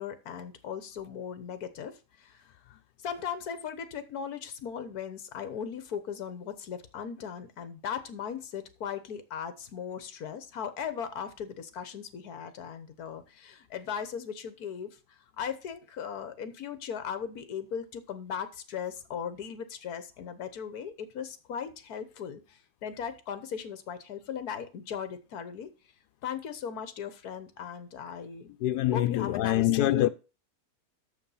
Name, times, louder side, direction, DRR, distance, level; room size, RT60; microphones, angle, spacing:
voice 1, 0.0-1.9 2.2-2.3 3.0-15.0 15.4-25.7 26.2-28.5 28.9-30.1, left 7 dB, 70° left, 1.5 m, -38 dB
voice 2, 28.6-30.1, left 13 dB, 85° left, 1.2 m, -25 dB
6.8 x 6.5 x 5.6 m
omnidirectional pair, 1.7 m